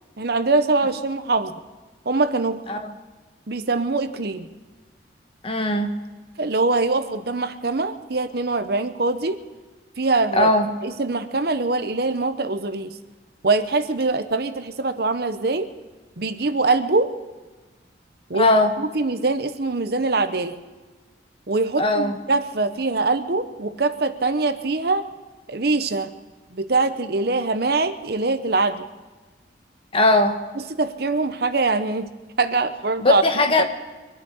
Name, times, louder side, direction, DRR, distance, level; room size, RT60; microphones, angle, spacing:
voice 1, 0.2-1.5 2.0-2.6 3.5-4.5 6.4-9.4 10.0-10.5 10.8-13.0 13.4-15.7 16.2-17.1 18.3-18.5 18.8-20.6 21.5-25.1 25.5-26.1 26.5-28.8 30.6-32.1 32.4-33.2 33.6-33.7, right 3 dB, 55° right, 10 dB, 0.8 m, -23 dB
voice 2, 5.4-5.9 10.3-10.7 18.4-18.7 21.8-22.2 29.9-30.4 33.0-33.6, left 2 dB, 30° left, 6 dB, 1.2 m, -19 dB
24.5 x 9.1 x 6.3 m, 1.3 s
head